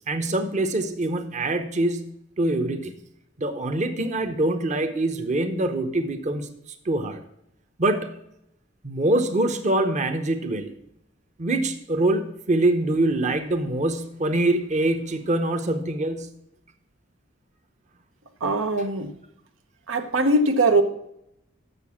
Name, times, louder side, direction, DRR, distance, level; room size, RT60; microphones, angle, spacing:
voice 1, 0.1-2.1 2.4-2.9 3.4-6.5 6.8-7.2 7.8-8.2 8.8-10.7 11.4-16.3, right 2 dB, 35° right, 7 dB, 0.8 m, -24 dB
voice 2, 18.4-19.1 19.9-20.8, right 2 dB, 90° right, 7 dB, 1.0 m, -21 dB
6.9 x 6.8 x 7.1 m, 0.78 s
head